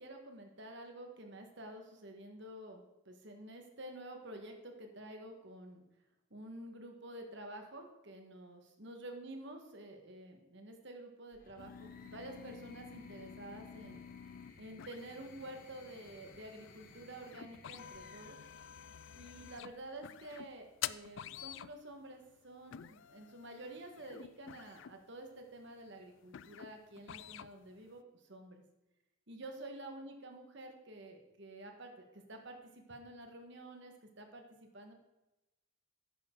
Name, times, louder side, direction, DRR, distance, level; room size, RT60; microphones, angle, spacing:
voice 1, 0.0-5.8 6.3-14.0 14.6-18.4 19.1-28.0 28.3-28.6 29.3-34.9, right 1 dB, 55° right, 4 dB, 1.8 m, -50 dB
sound 1, 11.3-19.7 20.9-21.6, left 3 dB, 40° left, 1.1 m, -61 dB
sound 2, 11.6-28.0, left 10 dB, 60° left, 0.3 m, -49 dB
11.0 x 9.7 x 4.0 m, 0.97 s
head